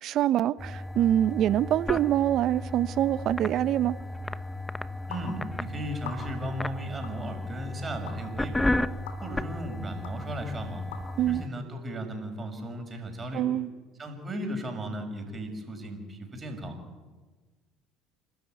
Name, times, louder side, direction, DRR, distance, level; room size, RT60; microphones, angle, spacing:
voice 1, 0.0-4.0 11.2-11.4 13.3-13.7, right 12 dB, 60° right, 0.7 m, -25 dB
sound 1, 0.6-11.5, left 1 dB, 10° left, 1.0 m, -34 dB
sound 2, 5.1-5.3 6.0-6.5 7.0-7.2 8.1-8.2 9.1-9.2 10.0-10.1 10.9-11.0, left 7 dB, 80° left, 3.0 m, -41 dB
voice 2, 5.1-8.7 9.2-10.8 11.3-13.5 14.0-16.8, right 1 dB, 25° right, 6.3 m, -36 dB
29.0 x 13.0 x 9.3 m
hypercardioid pair, 70°, 0 cm